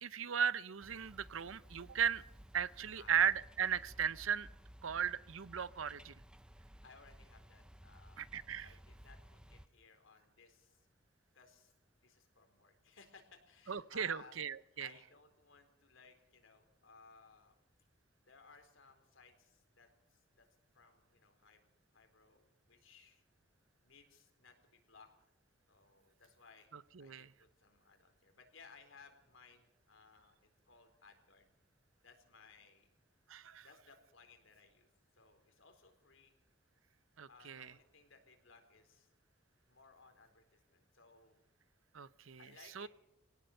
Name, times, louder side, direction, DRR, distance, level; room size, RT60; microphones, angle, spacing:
voice 1, 0.0-2.2 2.5-4.5 4.8-6.1 8.2-8.7 13.7-14.9 26.7-27.3 33.3-33.7 37.2-37.7 41.9-42.4 42.8-42.9, right 8 dB, 90° right, 18 dB, 0.7 m, -36 dB
sound 1, 0.8-9.7, equal, 5° right, 0.7 m, -57 dB
voice 2, 6.8-10.9 11.3-11.7 12.0-14.4 14.8-17.6 18.2-20.5 20.7-21.7 21.9-23.2 23.8-25.1 25.7-26.7 27.0-30.3 30.7-31.5 32.0-32.9 33.6-34.9 35.2-36.3 37.3-39.1 39.7-41.4 42.4-42.9, left 4 dB, 75° left, 6 dB, 4.0 m, -62 dB
24.0 x 17.5 x 6.6 m, 0.85 s
head